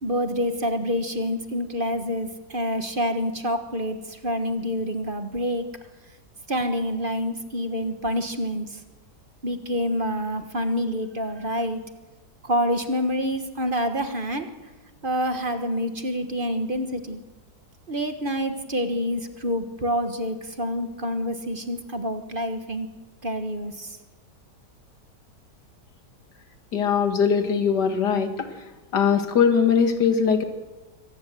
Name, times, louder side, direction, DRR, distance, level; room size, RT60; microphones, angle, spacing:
voice 1, 0.0-5.6 6.5-8.8 9.4-11.8 12.4-14.5 15.0-17.2 17.9-22.9 23.2-24.0, equal, 35° right, 7 dB, 1.5 m, -27 dB
voice 2, 26.7-28.6 28.9-30.4, left 6 dB, 90° left, 7 dB, 2.5 m, -21 dB
24.0 x 18.0 x 7.6 m, 1.2 s
omnidirectional pair, 1.7 m